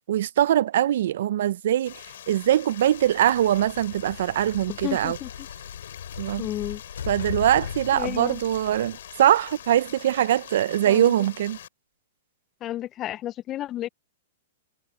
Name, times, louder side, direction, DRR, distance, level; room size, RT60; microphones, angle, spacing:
voice 1, 0.1-2.0 2.3-5.2 6.2-6.5 7.1-11.6, right 11 dB, 65° right, 0.4 m, -22 dB
Stream, 1.9-11.7, left 11 dB, 70° left, 2.7 m, -44 dB
sound 1, 2.9-9.6, left 8 dB, 90° left, 3.9 m, -39 dB
voice 2, 4.7-5.5 6.4-6.8 7.9-8.4 10.8-11.1 12.6-13.9, left 13 dB, 25° left, 0.4 m, -32 dB
Telephone, 4.7-6.7 7.7-9.7, right 8 dB, 90° right, 7.1 m, -60 dB
hypercardioid pair, 150°, 0 cm